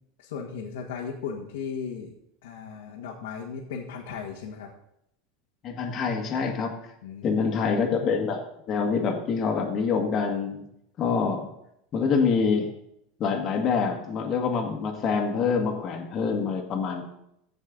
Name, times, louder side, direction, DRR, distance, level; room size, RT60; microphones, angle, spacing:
voice 1, 0.2-2.1 2.4-4.7 7.0-7.9, left 6 dB, 90° left, -2 dB, 1.6 m, -36 dB
voice 2, 5.6-6.7 7.2-8.4 8.7-10.6 11.0-11.5 11.9-12.7 13.2-17.0, left 5 dB, 35° left, 1 dB, 1.7 m, -26 dB
15.0 x 5.4 x 3.9 m, 0.76 s
supercardioid pair, 145°, 0 cm